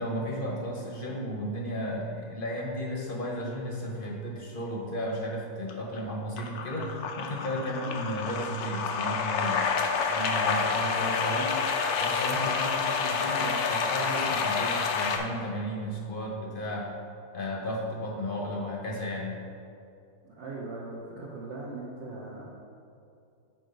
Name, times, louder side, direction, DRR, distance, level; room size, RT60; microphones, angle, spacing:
voice 1, 0.0-9.6 10.1-11.6 12.0-16.9 17.3-19.4, equal, 40° left, -1 dB, 0.9 m, -34 dB
sound 1, 5.7-6.0 6.4-15.2, left 5 dB, 90° left, 1.2 m, -28 dB
voice 2, 7.6-8.0 20.2-22.4, right 2 dB, 55° right, -5 dB, 1.1 m, -40 dB
6.3 x 4.5 x 5.1 m, 2.6 s
omnidirectional pair, 1.6 m